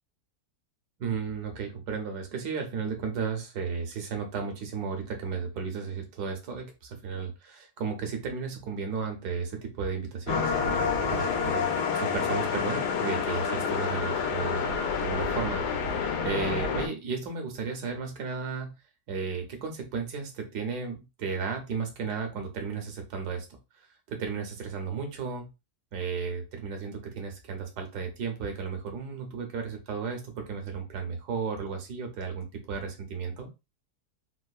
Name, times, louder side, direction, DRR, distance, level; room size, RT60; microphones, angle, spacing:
voice 1, 1.0-11.6 11.9-18.7 19.1-23.5 24.1-25.5 25.9-33.5, right 5 dB, 80° right, 4 dB, 1.4 m, -34 dB
sound 1, 10.3-16.9, left 6 dB, 85° left, 1.2 m, -28 dB
3.7 x 2.4 x 2.3 m, 0.26 s
omnidirectional pair, 1.7 m